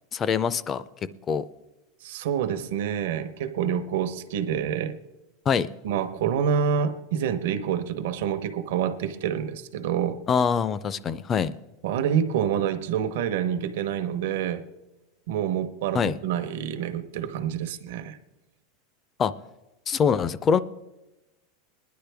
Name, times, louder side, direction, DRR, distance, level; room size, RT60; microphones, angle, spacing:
voice 1, 0.1-0.8 1.3-1.4 5.5-5.7 10.3-11.5 15.9-16.2 19.2-19.3 19.9-20.6, left 6 dB, 20° left, 0.4 m, -24 dB
voice 2, 2.0-5.0 5.8-10.2 11.8-14.6 15.3-18.2, right 8 dB, 70° right, 0.8 m, -27 dB
20.5 x 10.5 x 3.4 m
supercardioid pair, 160°, 0 cm